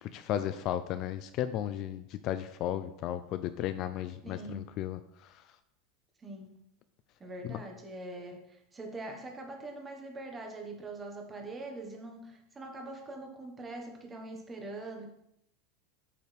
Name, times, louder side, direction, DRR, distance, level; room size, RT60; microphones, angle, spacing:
voice 1, 0.1-5.0 7.5-7.6, left 11 dB, 40° left, 11 dB, 0.4 m, -34 dB
voice 2, 4.2-4.7 6.2-6.5 7.2-15.1, right 2 dB, 15° right, 3 dB, 1.3 m, -43 dB
8.0 x 6.8 x 3.4 m, 0.79 s
supercardioid pair, 155°, 0 cm